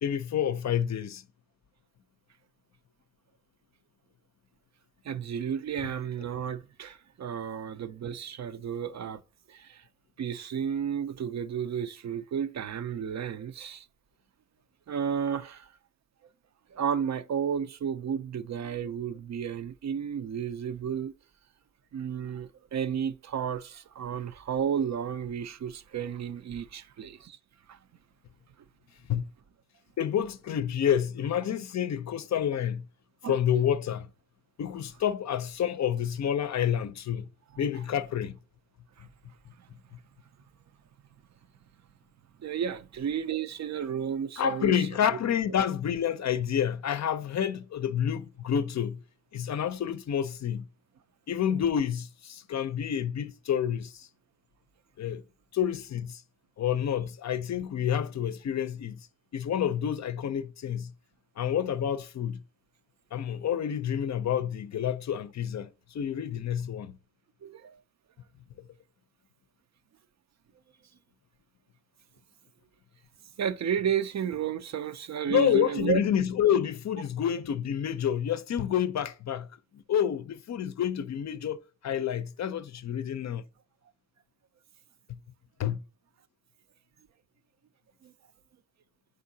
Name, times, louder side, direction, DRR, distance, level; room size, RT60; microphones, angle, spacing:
voice 1, 0.0-1.2 29.1-29.2 30.0-32.8 33.2-34.1 34.6-37.3 37.6-38.4 44.4-49.0 49.3-50.7 51.3-54.1 55.0-55.2 55.5-56.2 56.6-59.1 59.3-60.9 61.4-62.4 63.1-67.0 75.3-79.5 79.7-83.4 85.1-85.2 85.6-85.8, left 9 dB, 60° left, 0.5 m, -29 dB
voice 2, 5.0-9.2 9.5-9.8 10.2-13.9 14.9-15.7 16.7-21.1 21.9-27.4 27.7-27.8 33.2-33.4 39.0-39.1 39.6-39.7 42.4-44.9 67.4-67.8 73.4-76.0 88.0-88.1, right 8 dB, 60° right, 0.5 m, -32 dB
5.1 x 3.7 x 2.7 m
cardioid pair, 40°, 31 cm